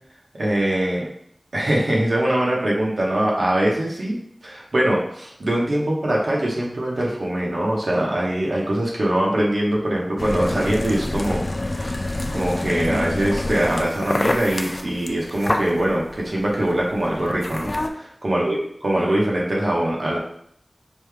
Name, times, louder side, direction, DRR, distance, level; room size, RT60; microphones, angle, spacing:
voice 1, 0.4-1.1 1.5-11.4 11.7-12.0 12.3-20.2, right 1 dB, 85° right, -3 dB, 1.0 m, -22 dB
sound 1, 10.2-17.9, left 1 dB, 50° left, 0.4 m, -27 dB
5.3 x 3.2 x 2.2 m, 0.69 s
wide cardioid pair, 45°, 0 cm